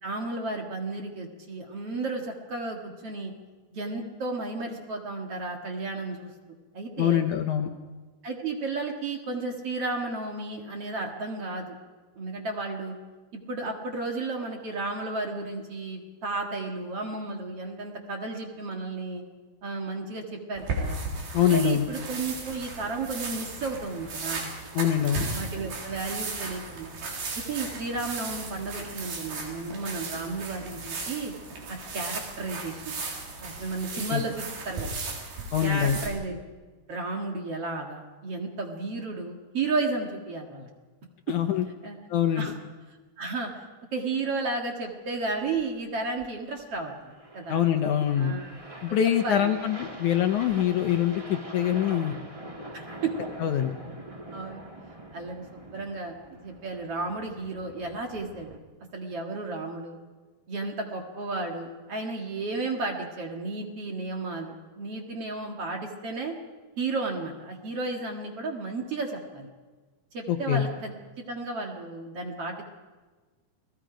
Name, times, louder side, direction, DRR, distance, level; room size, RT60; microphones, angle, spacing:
voice 1, 0.0-3.3 3.7-6.3 6.7-7.2 8.2-11.8 12.2-13.0 13.5-19.2 19.6-21.0 21.5-24.4 25.3-26.9 27.5-31.3 31.7-32.9 33.4-34.9 35.6-36.4 36.9-40.7 41.8-42.0 42.3-42.6 43.2-43.5 43.9-47.6 48.2-48.5 49.2-49.5 52.7-53.1 54.3-54.6 55.1-58.6 58.9-60.0 60.5-66.4 66.8-69.5 70.1-70.9 71.3-72.6, right 3 dB, 45° right, 1 dB, 2.5 m, -33 dB
voice 2, 7.0-7.7 21.3-21.9 24.7-25.3 34.1-34.2 35.5-36.0 41.3-41.7 42.1-42.5 47.5-48.3 48.8-52.2 53.4-53.7 70.3-70.6, left 10 dB, 70° left, 6 dB, 2.1 m, -24 dB
sound 1, 20.5-36.1, right 3 dB, 85° right, 5.5 m, -36 dB
sound 2, 45.3-58.6, right 1 dB, 20° right, 0.8 m, -44 dB
28.5 x 20.0 x 5.1 m, 1.3 s
omnidirectional pair, 4.2 m